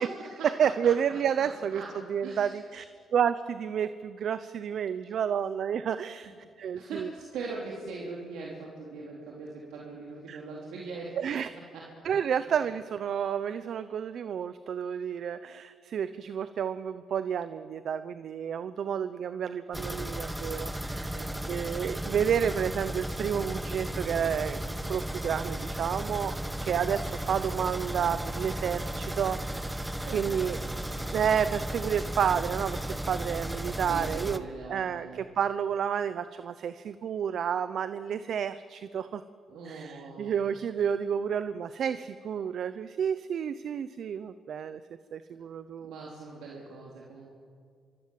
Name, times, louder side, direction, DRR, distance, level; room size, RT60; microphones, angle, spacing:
voice 1, 0.0-0.9 1.4-2.6 6.7-11.2 11.5-12.1 21.1-21.4 30.0-30.8 33.8-35.2 39.5-40.3 45.8-47.3, right 3 dB, 85° right, -3 dB, 3.9 m, -41 dB
voice 2, 0.6-1.8 2.1-2.8 3.1-7.1 10.3-10.4 11.2-11.5 12.0-21.2 21.5-26.4 26.6-30.6 31.1-34.4 34.7-39.2 39.7-44.8 45.1-45.9, right 8 dB, 65° right, 13 dB, 0.8 m, -30 dB
sound 1, 19.7-34.4, right 1 dB, 10° right, 1.2 m, -35 dB
25.5 x 25.0 x 7.7 m, 2.2 s
cardioid pair, 90°, 0 cm